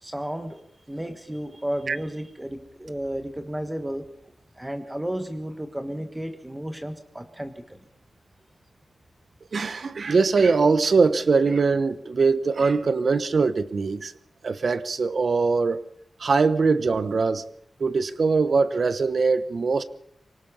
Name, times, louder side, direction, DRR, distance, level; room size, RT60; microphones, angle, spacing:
voice 1, 0.0-7.8, right 1 dB, 10° right, 1.5 m, -33 dB
voice 2, 9.5-14.1 14.4-15.8 16.2-17.4 17.8-19.8, right 4 dB, 55° right, 1.1 m, -22 dB
24.5 x 18.5 x 5.6 m
wide cardioid pair, 130°, 0 cm